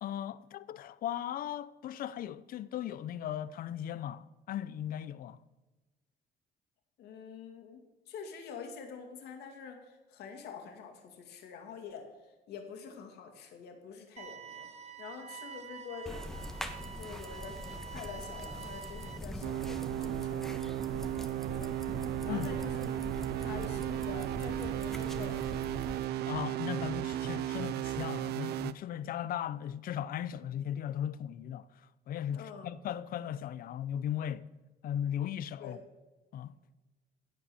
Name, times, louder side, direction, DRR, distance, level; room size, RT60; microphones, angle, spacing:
voice 1, 0.0-5.4 22.3-22.5 26.3-34.5 34.8-35.8 36.3-36.6, left 10 dB, 60° left, 0.6 m, -37 dB
voice 2, 7.0-16.3 16.8-21.7 22.2-25.4 32.3-32.7 35.6-35.8, left 6 dB, 75° left, 2.4 m, -47 dB
sound 1, 14.2-19.2, right 7 dB, 40° right, 1.2 m, -47 dB
sound 2, 16.1-26.1, left 1 dB, ahead, 1.2 m, -43 dB
sound 3, 19.4-28.7, right 12 dB, 70° right, 0.6 m, -35 dB
16.0 x 5.4 x 7.0 m
cardioid pair, 110°, 17 cm